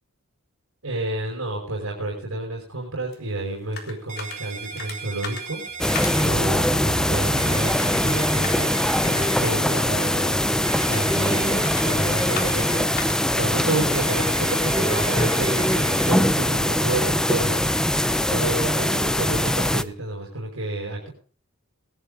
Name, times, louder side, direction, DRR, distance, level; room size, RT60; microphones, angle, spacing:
voice 1, 0.8-5.6 5.9-13.0 13.4-21.1, right 2 dB, 70° right, -2 dB, 5.4 m, -30 dB
sound 1, 3.1-14.8, left 5 dB, 45° left, 3.8 m, -41 dB
sound 2, 4.1-6.3 7.4-9.6 10.6-12.8 13.9-16.1, right 5 dB, 35° right, 5.0 m, -37 dB
sound 3, 5.8-19.8, left 1 dB, 5° left, 0.6 m, -22 dB
20.0 x 11.5 x 3.9 m, 0.42 s
head